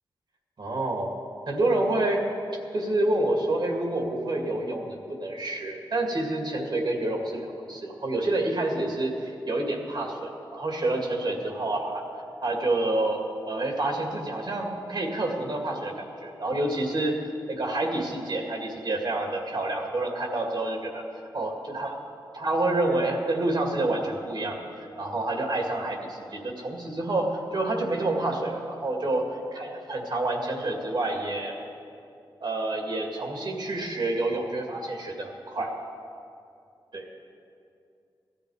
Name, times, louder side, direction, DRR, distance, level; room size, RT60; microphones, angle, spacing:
voice 1, 0.6-1.1 1.5-2.3 2.7-12.0 12.4-17.1 17.5-21.0 21.3-22.0 22.3-29.2 29.5-31.5 32.4-35.7 36.9-37.1, right 2 dB, 60° right, 1 dB, 2.2 m, -28 dB
16.0 x 13.0 x 4.9 m, 2.6 s
cardioid pair, 70°, 9 cm